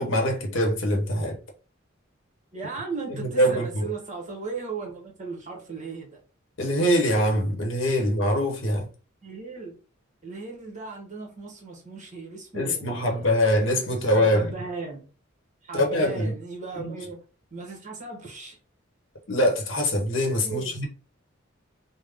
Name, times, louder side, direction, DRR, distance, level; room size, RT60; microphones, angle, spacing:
voice 1, 0.0-1.4 3.1-3.9 6.6-8.9 12.5-14.5 15.7-16.3 16.7-17.0 19.3-20.9, equal, 65° left, 0.9 m, -23 dB
voice 2, 2.5-6.2 9.2-9.8 10.2-13.3 13.9-15.0 15.6-17.2 17.5-18.6 20.4-20.7, right 4 dB, 40° right, 1.0 m, -37 dB
3.4 x 2.0 x 3.4 m
head